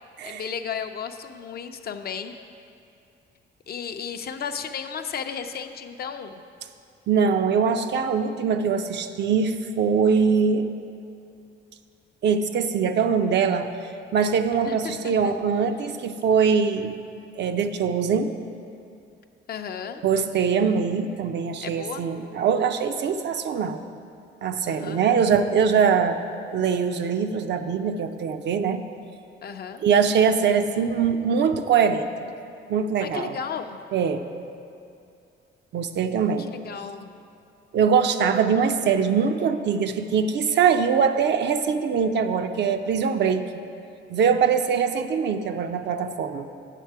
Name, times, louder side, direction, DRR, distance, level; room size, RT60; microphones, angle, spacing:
voice 1, 0.2-2.4 3.7-6.4 14.6-15.3 19.5-20.0 21.6-22.1 24.6-25.1 29.4-29.8 33.0-33.8 36.4-37.1, left 7 dB, 50° left, 7 dB, 0.5 m, -34 dB
voice 2, 7.1-10.7 12.2-13.7 14.1-17.0 17.4-18.3 20.0-23.8 24.4-26.2 26.5-28.8 29.8-32.1 32.7-33.4 33.9-34.2 35.7-36.5 37.7-43.4 44.1-46.5, right 6 dB, 60° right, 8 dB, 0.5 m, -22 dB
9.1 x 6.5 x 4.6 m, 2.6 s
cardioid pair, 90°, 20 cm